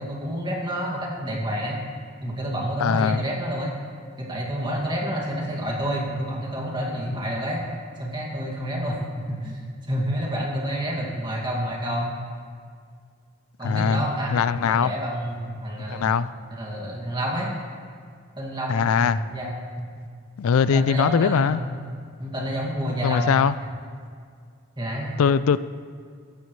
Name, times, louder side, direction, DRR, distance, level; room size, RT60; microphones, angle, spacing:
voice 1, 0.0-1.8 2.2-3.7 4.2-7.6 8.0-9.6 9.9-12.2 13.6-14.4 14.7-16.2 16.5-17.5 18.4-19.9 20.7-21.7 22.2-23.3 24.8-25.1, equal, 20° right, -2 dB, 2.1 m, -29 dB
voice 2, 2.8-3.2 13.6-14.0 14.3-14.9 15.9-16.3 18.7-19.2 20.4-21.6 23.0-23.6 25.2-25.6, left 6 dB, 85° left, 15 dB, 0.4 m, -21 dB
15.0 x 14.0 x 3.2 m, 2.1 s
head